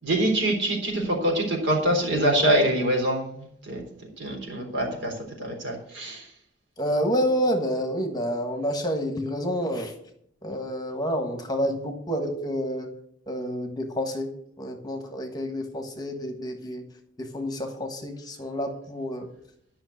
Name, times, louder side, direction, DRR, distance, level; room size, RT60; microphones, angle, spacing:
voice 1, 0.0-3.8 4.2-6.3, right 1 dB, 70° right, 0 dB, 3.8 m, -25 dB
voice 2, 6.8-9.9 10.4-12.9 13.3-14.3 14.6-16.8 17.2-19.3, equal, 20° left, 4 dB, 1.4 m, -28 dB
12.0 x 5.8 x 8.0 m, 0.70 s
head